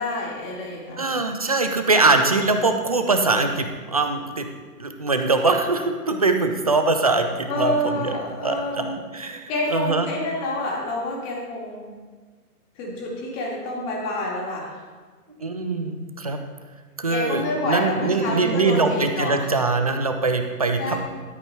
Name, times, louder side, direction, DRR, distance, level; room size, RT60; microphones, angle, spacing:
voice 1, 0.0-1.2 7.5-9.0 9.5-11.8 12.8-14.7 17.1-19.5 20.8-21.0, left 1 dB, 25° left, -3 dB, 2.5 m, -28 dB
voice 2, 1.0-4.5 4.8-8.1 8.4-10.1 15.4-16.4 17.0-21.0, right 3 dB, 25° right, 6 dB, 0.4 m, -22 dB
12.5 x 5.2 x 4.5 m, 1.4 s
figure-of-eight pair, 125°, 47 cm